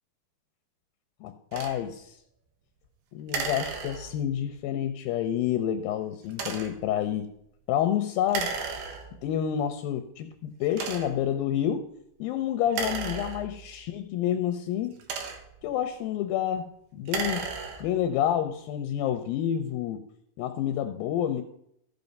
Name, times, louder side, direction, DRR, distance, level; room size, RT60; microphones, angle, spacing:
voice 1, 1.2-2.2 3.1-7.3 7.7-8.5 9.2-11.9 12.2-15.0 15.6-17.5 17.8-20.0 20.4-21.4, left 10 dB, 80° left, 8 dB, 2.3 m, -29 dB
sound 1, 1.5-1.8 3.3-4.3 6.3-6.9 8.3-9.3 10.0-10.1 10.7-11.3 12.7-13.8 14.8-15.7 17.0-18.0, right 5 dB, 80° right, 3.2 m, -34 dB
15.0 x 5.5 x 5.3 m, 0.73 s
omnidirectional pair, 4.5 m